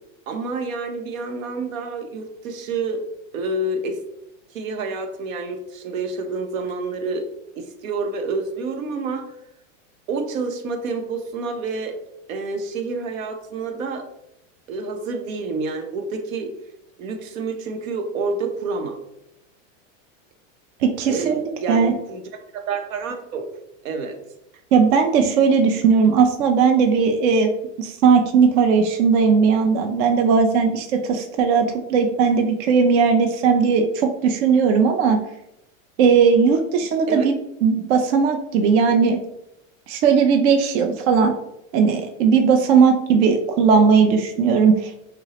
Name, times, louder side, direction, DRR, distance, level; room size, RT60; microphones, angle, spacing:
voice 1, 0.3-3.0 3.3-4.0 4.5-7.3 7.6-9.2 10.1-12.0 12.3-14.1 14.7-16.5 17.0-19.0 21.1-23.5 23.8-24.2 37.1-37.2, right 3 dB, 85° right, 5 dB, 0.8 m, -28 dB
voice 2, 20.8-22.0 24.7-27.5 27.8-35.2 36.0-37.4 37.6-39.2 39.9-41.3 41.7-44.9, right 5 dB, 55° right, 5 dB, 0.5 m, -17 dB
6.0 x 2.0 x 2.9 m, 0.84 s
supercardioid pair, 140°, 39 cm